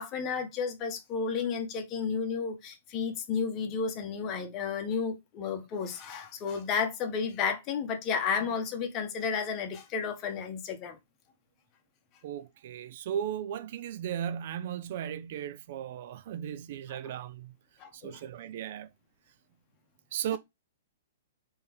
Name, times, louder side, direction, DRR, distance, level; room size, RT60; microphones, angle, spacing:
voice 1, 0.0-11.0 16.9-17.1 17.8-18.2, left 6 dB, 25° left, 1.2 m, -32 dB
voice 2, 12.2-17.5 17.9-18.9 20.1-20.4, right 9 dB, 50° right, 0.4 m, -36 dB
4.3 x 3.6 x 3.4 m
hypercardioid pair, 155°, 0 cm